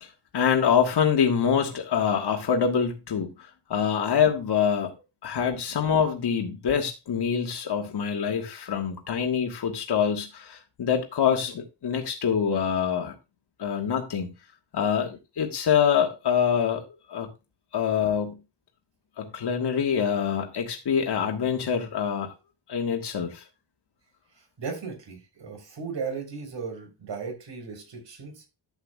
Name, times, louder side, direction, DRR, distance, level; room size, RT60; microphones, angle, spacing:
voice 1, 0.0-4.9 5.2-13.1 13.6-14.3 14.7-17.3 17.7-18.3 19.2-22.3 22.7-23.4, left 7 dB, 60° left, 1.5 m, -25 dB
voice 2, 24.6-28.4, right 5 dB, 65° right, 3.8 m, -36 dB
12.0 x 8.0 x 2.3 m
wide cardioid pair, 125°, 45 cm